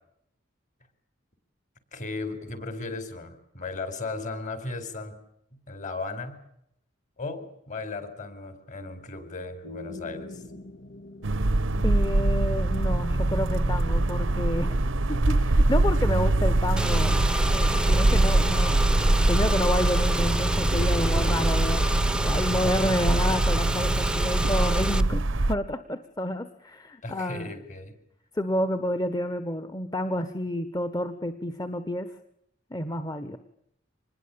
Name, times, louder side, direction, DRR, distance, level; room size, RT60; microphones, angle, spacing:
voice 1, 1.9-5.2 5.7-6.4 7.2-10.4 27.0-27.9, left 3 dB, 40° left, 11 dB, 4.8 m, -36 dB
sound 1, 9.6-23.5, left 1 dB, 70° left, 2.2 m, -45 dB
sound 2, 11.2-25.5, right 2 dB, 80° right, 1.0 m, -23 dB
voice 2, 11.8-14.7 15.1-17.2 17.5-18.8 19.3-27.5 28.3-32.1 32.7-33.4, left 1 dB, 20° left, 10 dB, 1.4 m, -29 dB
Car / Engine, 16.8-25.0, right 1 dB, 5° right, 0.9 m, -28 dB
26.0 x 20.5 x 8.8 m, 0.76 s
head